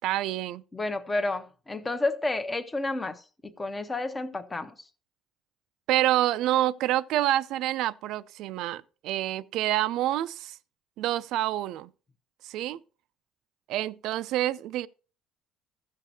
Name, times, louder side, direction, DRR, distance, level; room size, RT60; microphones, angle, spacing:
voice 1, 0.0-0.6 5.9-10.6 11.0-11.9 12.4-12.8 13.7-14.9, right 14 dB, 65° right, 0.5 m, -27 dB
voice 2, 0.7-4.9, left 2 dB, 15° left, 0.8 m, -31 dB
15.5 x 6.5 x 2.9 m
cardioid pair, 165°, 0 cm